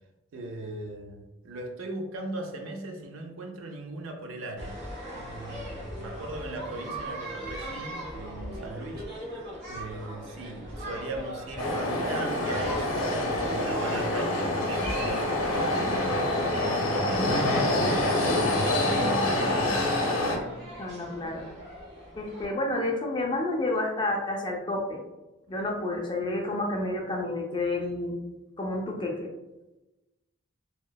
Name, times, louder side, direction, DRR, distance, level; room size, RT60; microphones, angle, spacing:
voice 1, 0.3-9.1 9.7-16.1 16.4-19.9, right 2 dB, 70° right, 3 dB, 0.4 m, -38 dB
sound 1, 4.6-22.5, equal, 55° right, 1.2 m, -39 dB
sound 2, 11.6-20.4, left 1 dB, 90° left, 0.6 m, -26 dB
voice 2, 20.8-21.4 22.2-25.0 25.5-28.2 28.6-29.3, left 2 dB, 20° left, 0 dB, 0.3 m, -30 dB
2.8 x 2.0 x 2.2 m, 1.0 s
head